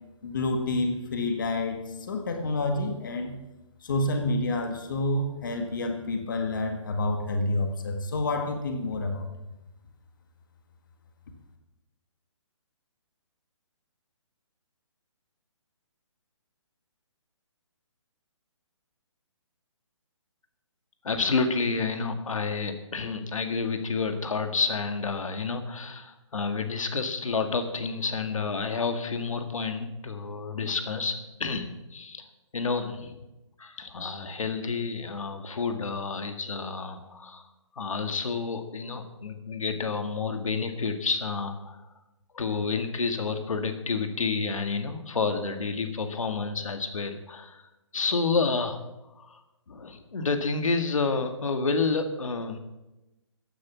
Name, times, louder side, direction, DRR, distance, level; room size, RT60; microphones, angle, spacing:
voice 1, 0.2-3.4 3.8-9.3, left 2 dB, 40° left, 5 dB, 1.7 m, -28 dB
voice 2, 21.0-32.2 32.5-33.2 33.6-37.5 37.8-41.8 42.3-47.7 47.9-48.8 49.2-49.4 49.7-52.6, left 4 dB, 85° left, 7 dB, 1.9 m, -29 dB
14.5 x 9.8 x 6.2 m, 0.99 s
hypercardioid pair, 175°, 16 cm